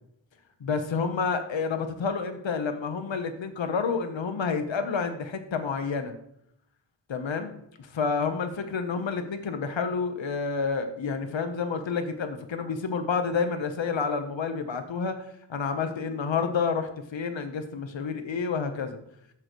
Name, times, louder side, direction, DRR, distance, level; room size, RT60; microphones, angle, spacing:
voice 1, 0.6-6.1 7.1-7.5 7.9-15.2 15.5-19.0, left 5 dB, 80° left, 7 dB, 1.0 m, -29 dB
13.0 x 6.6 x 3.1 m, 0.75 s
wide cardioid pair, 55°, 45 cm